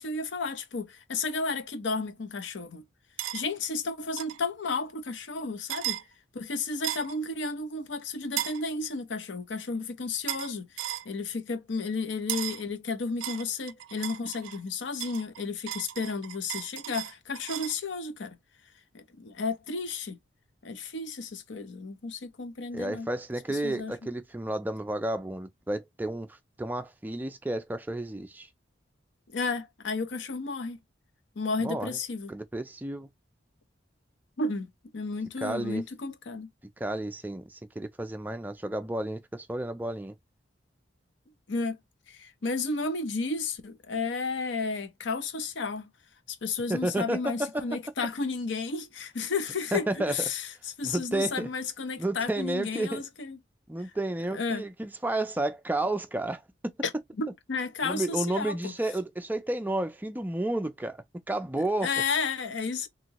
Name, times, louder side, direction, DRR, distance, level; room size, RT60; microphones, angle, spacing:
voice 1, 0.0-2.9 3.3-6.0 6.3-18.4 18.9-20.2 20.6-23.1 23.5-23.9 29.3-30.8 31.4-32.3 34.4-34.7 34.9-36.5 41.5-41.8 42.1-45.9 46.3-50.5 50.8-53.4 54.3-54.6 57.2-58.7 61.5-62.9, left 4 dB, 70° left, 0.6 m, -32 dB
sound 1, 3.2-3.4 4.2-4.4 5.7-6.0 6.8-7.2 8.4-8.6 10.3-10.5 10.8-11.1 12.3-12.6 13.2-14.6 15.0-17.8, right 13 dB, 90° right, 0.3 m, -35 dB
voice 2, 22.7-28.5 31.6-32.0 32.3-33.1 35.4-35.8 36.8-40.1 46.7-47.6 49.7-50.3 50.8-51.5 52.0-53.0 53.7-56.7 57.8-61.9, right 1 dB, 10° right, 0.3 m, -31 dB
2.9 x 2.7 x 2.8 m
head